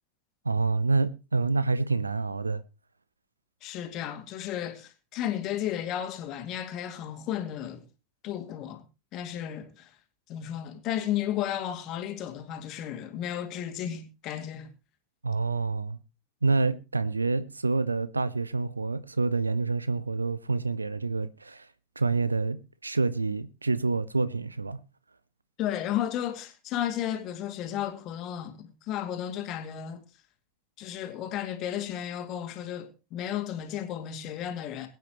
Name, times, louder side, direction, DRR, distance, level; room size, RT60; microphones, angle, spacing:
voice 1, 0.4-2.6 15.2-16.0 16.4-21.7 22.0-24.8, right 3 dB, 80° right, 0.6 m, -27 dB
voice 2, 3.6-7.8 8.2-8.8 9.1-9.9 10.3-14.7 25.6-30.0 30.8-34.9, left 11 dB, 40° left, 2.4 m, -33 dB
22.0 x 9.2 x 3.1 m
figure-of-eight pair, 85°, 0 cm